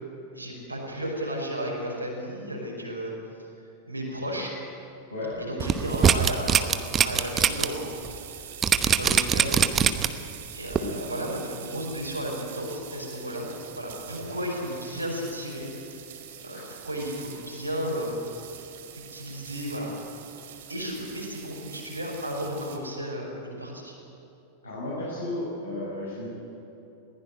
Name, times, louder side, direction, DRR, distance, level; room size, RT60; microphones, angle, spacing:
voice 1, 0.3-3.1 3.9-4.5 5.4-7.9 8.2-8.5 9.0-10.0 10.5-15.7 16.4-18.2 19.1-19.9 20.7-23.9, equal, 90° right, -4 dB, 5.7 m, -34 dB
sound 1, 5.3-22.8, right 9 dB, 55° right, 2.6 m, -44 dB
sound 2, 5.6-7.7 8.0-8.2 8.6-10.3 10.7-10.8, right 8 dB, 25° right, 1.0 m, -21 dB
voice 2, 24.6-26.3, left 2 dB, 75° left, -7 dB, 6.0 m, -33 dB
21.0 x 16.5 x 9.9 m, 2.9 s
figure-of-eight pair, 90°, 0 cm